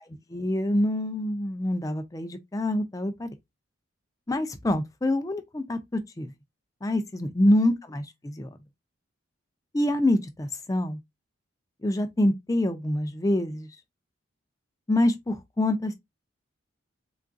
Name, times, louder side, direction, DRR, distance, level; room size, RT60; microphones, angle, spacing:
voice 1, 0.3-3.3 4.3-6.3 6.8-8.5 9.7-11.0 11.8-13.7 14.9-15.9, left 1 dB, 15° left, 0.4 m, -26 dB
3.7 x 2.4 x 2.4 m
head